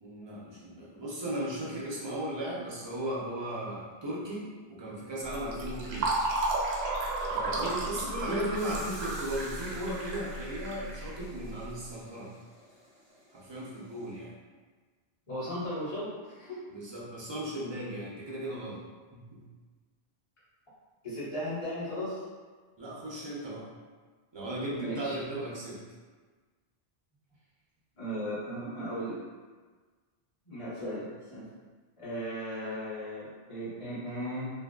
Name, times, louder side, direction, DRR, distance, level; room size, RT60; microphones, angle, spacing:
voice 1, 0.0-6.1 7.3-12.3 13.3-14.3 16.7-18.8 19.1-19.4 22.8-23.6 24.3-25.8, right 1 dB, 40° right, -6 dB, 0.4 m, -36 dB
Fill (with liquid), 5.3-11.7, right 2 dB, 75° right, 0.8 m, -33 dB
voice 2, 8.2-8.7 15.3-16.6 21.0-22.2 24.7-25.2 28.0-29.2 30.4-31.5 32.0-34.5, equal, 30° left, -10 dB, 1.0 m, -36 dB
sound 1, 8.5-14.2, equal, 80° left, 1.3 m, -52 dB
2.6 x 2.5 x 2.2 m, 1.4 s
omnidirectional pair, 1.1 m